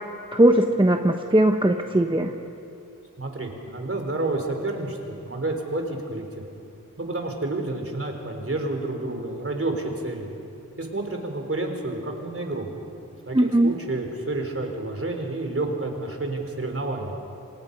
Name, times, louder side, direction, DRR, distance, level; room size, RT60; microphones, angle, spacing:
voice 1, 0.3-2.3 13.3-13.7, right 1 dB, 15° right, 4 dB, 1.1 m, -19 dB
voice 2, 3.2-6.4 7.0-10.3 10.8-12.7 13.2-17.1, right 2 dB, 45° right, 3 dB, 4.0 m, -29 dB
28.5 x 26.0 x 5.4 m, 2.6 s
wide cardioid pair, 70°, 32 cm